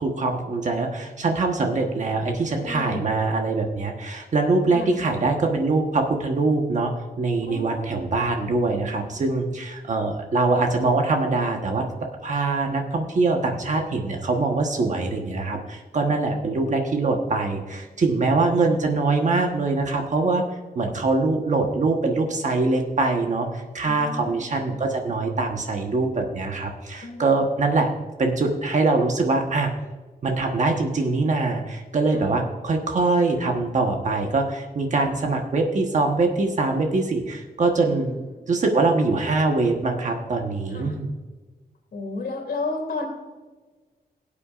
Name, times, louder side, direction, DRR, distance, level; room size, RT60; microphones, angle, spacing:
voice 1, 0.0-6.9 7.2-20.4 20.7-27.9 28.2-29.7 30.2-38.1 38.5-41.1, right 3 dB, 50° right, 2 dB, 1.2 m, -23 dB
voice 2, 2.5-3.0 4.7-4.9 7.5-8.0 23.8-24.4 27.0-27.3 32.1-32.2 38.0-38.2 40.7-40.9 41.9-43.0, left 3 dB, 80° left, -1 dB, 2.5 m, -32 dB
18.0 x 8.5 x 2.5 m, 1.3 s
wide cardioid pair, 155°, 16 cm